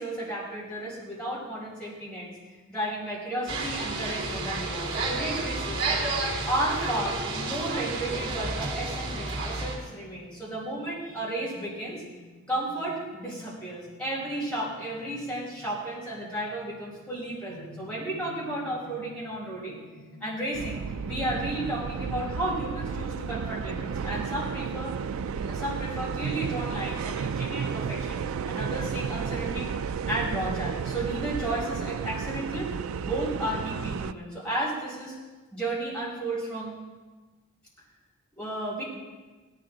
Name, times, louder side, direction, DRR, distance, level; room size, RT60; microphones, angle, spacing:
voice 1, 0.0-2.3 2.7-5.8 6.5-12.0 12.5-19.8 20.2-25.0 25.3-29.7 30.1-32.7 33.0-35.1 35.5-36.7 38.4-38.8, right 1 dB, 5° left, -8 dB, 5.3 m, -33 dB
sound 1, 3.5-9.8, right 3 dB, 55° right, 3.5 m, -31 dB
sound 2, 9.5-25.3, left 1 dB, 60° left, 4.0 m, -51 dB
sound 3, 20.5-34.1, right 6 dB, 70° right, 0.3 m, -32 dB
17.5 x 12.0 x 3.9 m, 1.3 s
head